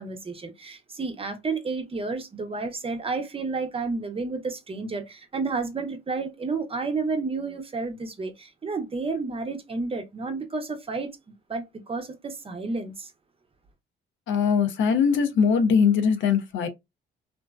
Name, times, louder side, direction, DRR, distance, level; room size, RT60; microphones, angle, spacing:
voice 1, 0.0-11.1 11.5-13.1, right 4 dB, 30° right, 0.6 m, -31 dB
voice 2, 14.3-16.7, left 6 dB, 75° left, 0.6 m, -21 dB
2.5 x 2.1 x 2.2 m
cardioid pair, 90°, 20 cm